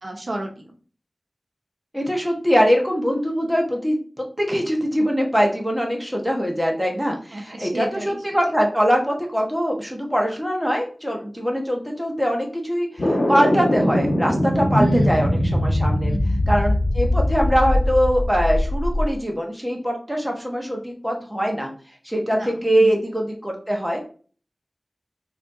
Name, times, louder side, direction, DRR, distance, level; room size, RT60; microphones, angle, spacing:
voice 1, 0.0-0.7 7.3-8.2 14.7-15.2 16.1-16.5 22.3-22.5 22.8-23.1, right 1 dB, 65° right, 1 dB, 0.8 m, -30 dB
voice 2, 1.9-16.1 16.5-21.7 22.0-24.0, equal, 5° right, 0 dB, 1.2 m, -22 dB
sound 1, 13.0-19.1, left 1 dB, 70° left, 1.5 m, -21 dB
4.1 x 2.8 x 2.7 m, 0.40 s
wide cardioid pair, 45°, 0 cm